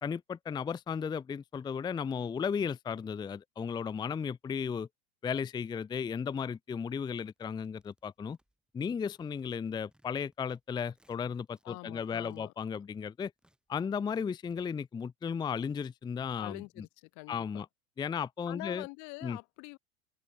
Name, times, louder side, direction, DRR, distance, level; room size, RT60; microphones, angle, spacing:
voice 1, 0.0-4.9 5.2-8.4 8.7-13.3 13.7-16.9 17.3-17.7 18.0-18.9 19.2-19.4, left 6 dB, 15° left, 0.5 m, -35 dB
sound 1, 7.2-8.8 9.0-10.6 10.9-11.7 12.0-14.6, right 1 dB, ahead, 6.2 m, -71 dB
voice 2, 11.6-12.5 16.4-17.6 18.5-19.8, left 32 dB, 55° left, 1.1 m, -45 dB
open air
supercardioid pair, 115°, 34 cm